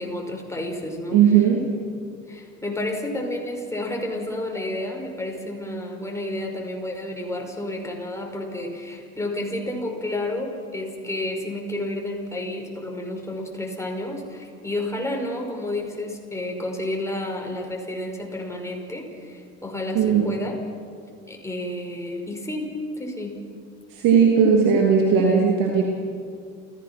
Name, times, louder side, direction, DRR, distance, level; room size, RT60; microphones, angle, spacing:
voice 1, 0.0-1.2 2.3-20.5 21.3-23.4, left 1 dB, 5° left, 1 dB, 5.6 m, -30 dB
voice 2, 1.1-1.7 19.9-20.3 23.9-25.8, right 6 dB, 60° right, 0 dB, 3.1 m, -17 dB
29.0 x 16.5 x 6.1 m, 2.2 s
hypercardioid pair, 65°, 38 cm